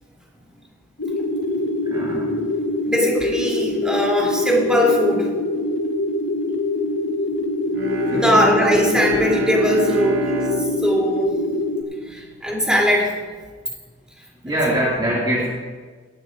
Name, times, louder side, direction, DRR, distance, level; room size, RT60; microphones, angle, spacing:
sound 1, 1.0-11.8, left 1 dB, 80° left, 1.1 m, -24 dB
voice 1, 1.9-2.4 8.1-8.5 14.4-15.5, right 1 dB, 25° right, -6 dB, 2.1 m, -23 dB
voice 2, 2.8-5.3 8.1-11.3 12.0-13.2, equal, 5° right, -3 dB, 2.9 m, -20 dB
Bowed string instrument, 7.7-12.6, equal, 90° right, 2.3 m, -29 dB
18.5 x 14.5 x 2.5 m, 1.5 s
head